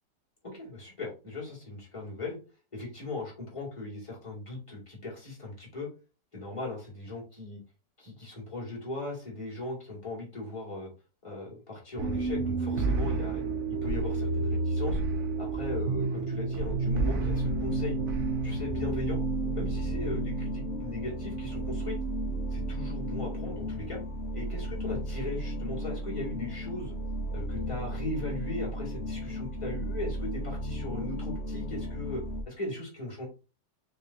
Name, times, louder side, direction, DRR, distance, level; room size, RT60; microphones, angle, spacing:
voice 1, 0.4-2.4 2.7-5.9 6.3-7.6 8.0-10.9 11.2-13.4 13.7-15.0 15.4-18.0 18.4-19.2 19.5-22.0 22.5-24.0 24.3-26.9 27.3-33.3, left 2 dB, 15° left, -4 dB, 2.1 m, -38 dB
sound 1, 12.0-23.6, right 3 dB, 60° right, 0.8 m, -31 dB
sound 2, 16.8-32.4, equal, 60° left, 0.7 m, -35 dB
4.7 x 3.5 x 2.8 m, 0.31 s
omnidirectional pair, 1.9 m